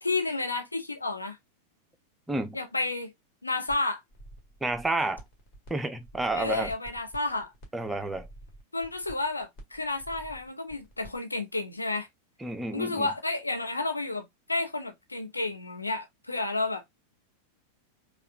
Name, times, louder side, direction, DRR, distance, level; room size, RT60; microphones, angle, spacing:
voice 1, 0.0-1.4 2.5-3.1 3.4-4.0 6.3-7.5 8.7-12.1 12.7-16.8, left 2 dB, 80° left, 0.8 m, -31 dB
sound 1, 3.7-3.8 4.1-5.7 6.0-11.2, right 1 dB, 35° left, 1.7 m, -48 dB
voice 2, 4.6-5.2 5.7-6.7 7.7-8.3 12.4-13.1, right 2 dB, 10° right, 0.6 m, -30 dB
5.0 x 2.3 x 2.4 m
figure-of-eight pair, 90°, 0 cm